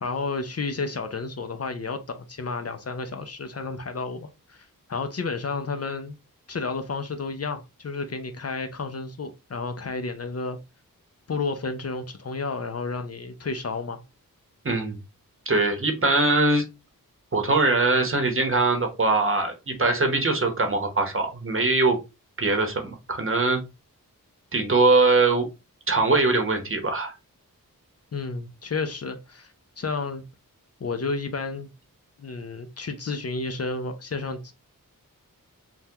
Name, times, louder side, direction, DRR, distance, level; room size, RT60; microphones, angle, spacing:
voice 1, 0.0-6.2 6.5-10.6 11.3-14.0 28.1-30.2 30.8-31.7 32.2-34.5, left 4 dB, 45° left, 0.5 m, -31 dB
voice 2, 14.6-15.0 15.5-16.6 17.3-22.0 22.4-23.6 24.5-25.5 25.9-27.1, right 3 dB, 40° right, 0.8 m, -22 dB
3.4 x 2.2 x 2.7 m
wide cardioid pair, 60°, 34 cm